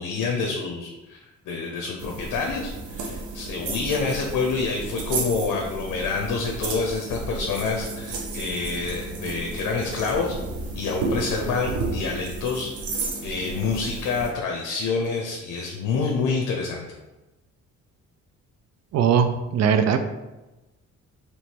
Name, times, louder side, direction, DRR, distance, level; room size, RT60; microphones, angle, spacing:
voice 1, 0.0-10.4 10.7-12.7 13.2-16.9, left 4 dB, 80° left, 1 dB, 0.7 m, -27 dB
sound 1, 2.0-14.3, right 3 dB, 80° right, 0.9 m, -32 dB
voice 2, 18.9-20.0, right 7 dB, 60° right, 8 dB, 0.4 m, -20 dB
3.1 x 3.1 x 4.4 m, 1.1 s
cardioid pair, 90°, 30 cm